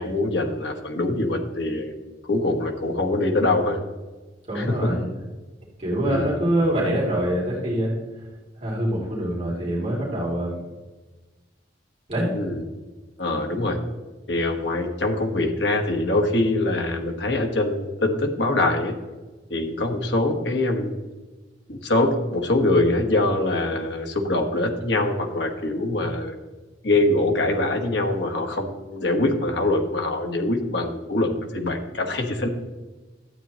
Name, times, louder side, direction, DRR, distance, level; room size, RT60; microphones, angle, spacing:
voice 1, 0.0-1.9 2.2-3.8 4.5-4.9 6.0-6.3 12.3-12.6 13.2-13.8 14.3-18.9 19.5-20.9 21.7-26.3 26.8-32.5, left 2 dB, 70° left, 3 dB, 1.4 m, -23 dB
voice 2, 4.5-5.1 5.8-7.9 8.6-10.5 12.1-12.3, right 1 dB, 35° right, -5 dB, 2.7 m, -24 dB
12.5 x 8.5 x 3.1 m, 1.2 s
head